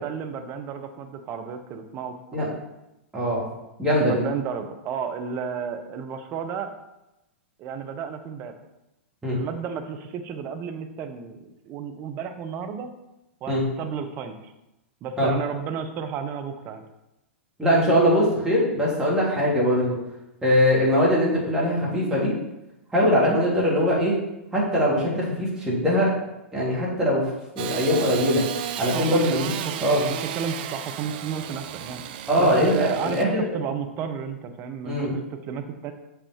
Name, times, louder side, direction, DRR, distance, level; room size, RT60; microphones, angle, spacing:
voice 1, 0.0-2.6 4.0-6.8 7.6-8.5 9.3-11.4 11.7-12.9 13.4-14.5 15.0-16.8 28.9-32.0 32.4-35.9, right 7 dB, 30° right, 7 dB, 0.8 m, -32 dB
voice 2, 3.1-3.4 3.8-4.2 9.2-9.4 13.5-13.6 15.2-15.3 17.6-20.0 20.4-22.3 22.9-24.2 24.5-26.1 26.5-27.3 27.5-28.4 28.8-29.5 29.8-30.1 32.3-33.5 34.8-35.1, equal, 10° right, -6 dB, 2.9 m, -21 dB
Engine starting / Sawing, 27.6-33.2, right 11 dB, 45° right, 0.4 m, -33 dB
6.8 x 5.7 x 4.4 m, 0.93 s
figure-of-eight pair, 100°, 7 cm